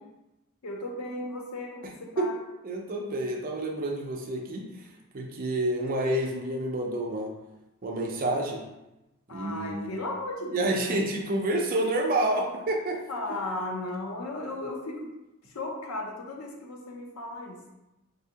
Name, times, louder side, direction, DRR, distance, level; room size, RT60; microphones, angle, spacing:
voice 1, 0.6-2.4 9.3-11.0 13.1-15.1 15.5-17.7, left 2 dB, 85° left, 0 dB, 0.6 m, -36 dB
voice 2, 2.6-4.6 5.1-7.3 7.8-8.6 9.3-9.9 10.5-13.0, right 1 dB, 40° right, 1 dB, 0.5 m, -28 dB
3.3 x 2.7 x 2.8 m, 0.97 s
head